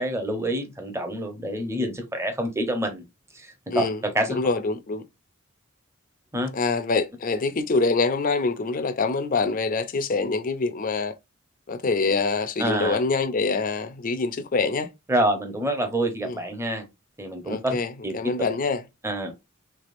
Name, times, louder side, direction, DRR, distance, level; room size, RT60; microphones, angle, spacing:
voice 1, 0.0-3.0 3.3-4.4 6.3-6.5 12.6-13.0 15.1-16.9 17.2-17.8 18.0-18.2 19.0-19.3, right 1 dB, 15° right, 0.7 m, -27 dB
voice 2, 4.3-5.0 6.5-11.1 11.7-14.9 16.2-16.4 17.5-17.9 18.1-18.8, left 3 dB, 40° left, 0.5 m, -25 dB
3.4 x 3.3 x 2.5 m
head